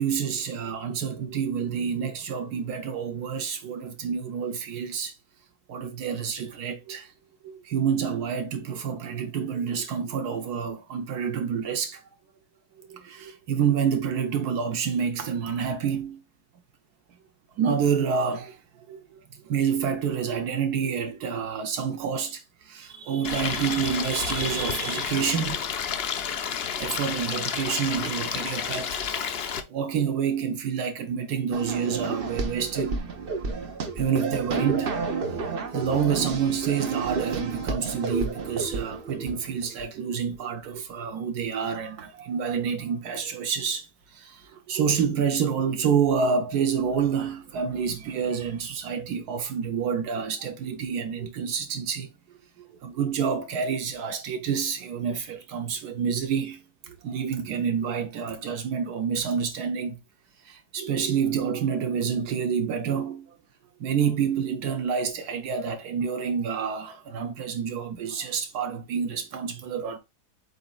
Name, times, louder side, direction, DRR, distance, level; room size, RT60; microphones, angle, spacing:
voice 1, 0.0-5.2 5.7-7.1 7.4-12.0 12.9-16.2 17.6-18.6 18.9-19.2 19.4-25.6 26.8-33.0 33.5-33.7 33.9-35.0 35.7-52.1 52.6-60.0 60.4-63.3 63.8-70.0, right 7 dB, 80° right, 1.2 m, -28 dB
Stream, 23.2-29.6, left 7 dB, 60° left, 0.6 m, -30 dB
sound 1, 31.5-39.8, right 4 dB, 45° right, 0.8 m, -31 dB
8.0 x 2.8 x 2.2 m
omnidirectional pair, 1.7 m